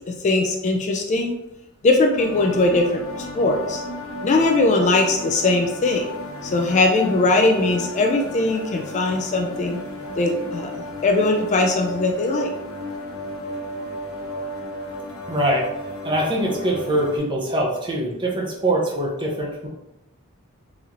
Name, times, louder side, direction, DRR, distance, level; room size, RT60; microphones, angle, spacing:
voice 1, 0.0-1.3 1.8-3.8 4.2-6.0 6.4-9.8 10.2-10.7 11.0-12.5, left 2 dB, 35° left, 2 dB, 0.3 m, -20 dB
sound 1, 2.2-17.2, left 1 dB, 80° left, 0.7 m, -34 dB
voice 2, 15.3-15.7 16.0-19.7, right 1 dB, 20° right, -2 dB, 0.7 m, -23 dB
4.1 x 2.6 x 2.9 m, 0.90 s
head